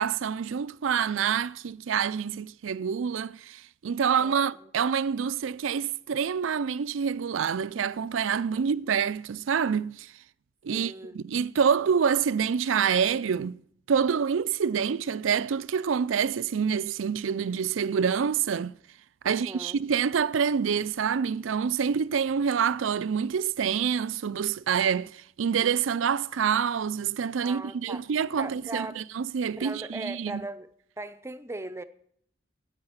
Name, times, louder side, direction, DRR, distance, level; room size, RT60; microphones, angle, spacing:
voice 1, 0.0-10.1 10.6-13.6 13.9-18.7 19.2-30.4, right 7 dB, 85° right, 0.4 m, -27 dB
voice 2, 4.2-4.7 10.7-11.2 19.2-19.8 27.4-28.0 28.3-29.0 29.6-30.7 31.0-31.8, right 2 dB, 15° right, 0.6 m, -39 dB
9.7 x 8.7 x 8.9 m
head